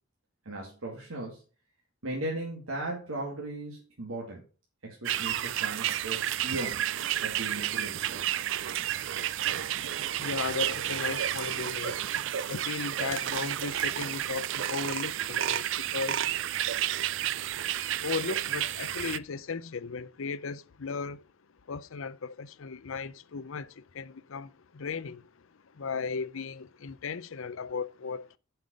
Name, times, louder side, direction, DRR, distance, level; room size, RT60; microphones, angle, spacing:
voice 1, 0.4-1.4 2.0-4.4 4.8-6.9 7.2-8.2, right 1 dB, 85° right, 2.5 m, -37 dB
sound 1, 5.0-19.2, right 11 dB, 60° right, 0.4 m, -31 dB
voice 2, 9.8-16.2 18.0-21.3 21.7-28.4, left 5 dB, 70° left, 0.6 m, -36 dB
7.7 x 5.6 x 6.4 m
head